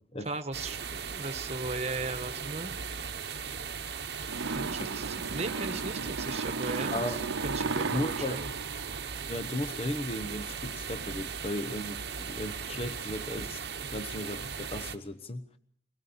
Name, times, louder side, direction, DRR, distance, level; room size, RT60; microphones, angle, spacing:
voice 1, 0.2-2.7 4.5-8.5, right 3 dB, 35° right, 1.3 m, -37 dB
sound 1, 0.5-15.0, right 6 dB, 55° right, 1.0 m, -38 dB
sound 2, 4.3-9.6, right 4 dB, 90° right, 0.9 m, -35 dB
voice 2, 6.9-7.2 7.9-8.4 9.3-15.6, left 1 dB, 30° left, 1.0 m, -36 dB
24.0 x 17.0 x 7.2 m
head